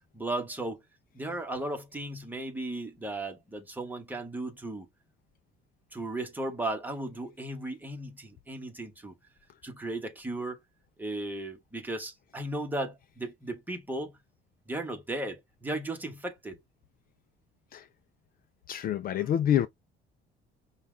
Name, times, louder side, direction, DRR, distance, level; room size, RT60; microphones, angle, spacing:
voice 1, 0.1-0.8 1.1-4.9 5.9-9.1 9.6-10.6 11.0-14.1 14.7-16.6 19.1-19.3, right 2 dB, 10° right, 1.1 m, -36 dB
voice 2, 18.7-19.7, left 10 dB, 45° left, 0.4 m, -26 dB
5.6 x 2.4 x 3.3 m
cardioid pair, 160°, 21 cm